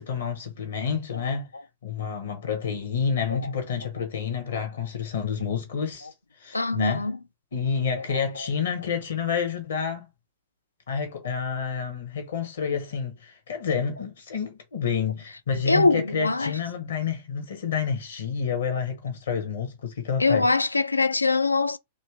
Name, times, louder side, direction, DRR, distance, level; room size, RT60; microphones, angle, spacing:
voice 1, 0.0-1.5 1.8-6.1 6.4-7.0 7.5-10.1 10.9-20.5, left 6 dB, 65° left, 1.4 m, -29 dB
voice 2, 6.5-7.2 7.9-8.0 8.4-8.5 15.7-16.5 20.2-21.8, left 3 dB, 85° left, 0.4 m, -23 dB
3.1 x 3.1 x 4.7 m
figure-of-eight pair, 100°, 0 cm